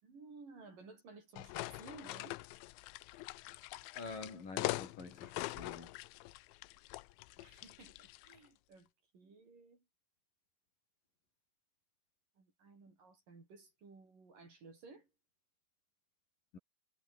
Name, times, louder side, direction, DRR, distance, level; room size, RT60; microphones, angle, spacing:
voice 1, 0.0-2.4 7.4-9.8 12.4-15.1, right 4 dB, 45° right, 7.7 m, -56 dB
sound 1, 1.4-8.4, left 20 dB, 80° left, 3.0 m, -43 dB
voice 2, 4.0-5.9 16.5-16.6, left 4 dB, 45° left, 7.4 m, -47 dB
omnidirectional pair, 5.4 m